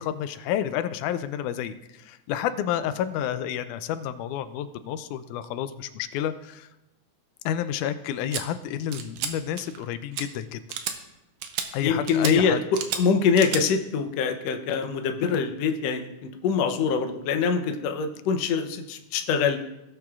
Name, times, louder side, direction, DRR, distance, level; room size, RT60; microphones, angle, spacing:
voice 1, 0.0-6.7 7.5-10.6 11.7-12.6, left 10 dB, 85° left, 11 dB, 2.0 m, -30 dB
sound 1, 8.3-8.4 8.9-9.3 9.6-9.8 10.1-10.2 10.7-11.0 11.4-11.7 12.1-12.3 12.7-13.0 13.4-13.6, right 8 dB, 75° right, 1.9 m, -31 dB
voice 2, 11.8-19.6, left 6 dB, 70° left, 5 dB, 1.7 m, -24 dB
17.5 x 7.4 x 2.4 m, 0.92 s
omnidirectional pair, 3.5 m